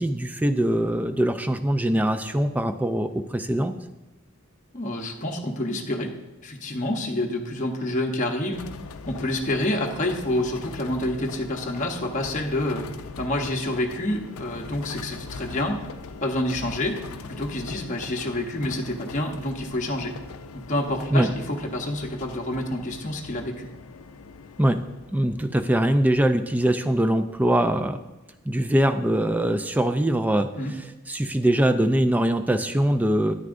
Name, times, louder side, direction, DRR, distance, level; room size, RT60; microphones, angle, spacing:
voice 1, 0.0-3.7 21.1-21.3 24.6-24.8 25.1-28.0 28.5-30.5 30.8-33.3, right 1 dB, 5° right, 9 dB, 0.3 m, -22 dB
voice 2, 4.7-6.1 6.4-8.6 9.1-12.9 13.2-15.8 16.2-20.1 20.7-23.7 30.6-30.7, left 1 dB, 35° left, 0 dB, 0.8 m, -28 dB
sound 1, 8.5-26.2, left 4 dB, 85° left, 0.5 m, -41 dB
9.6 x 9.6 x 2.6 m, 1.1 s
head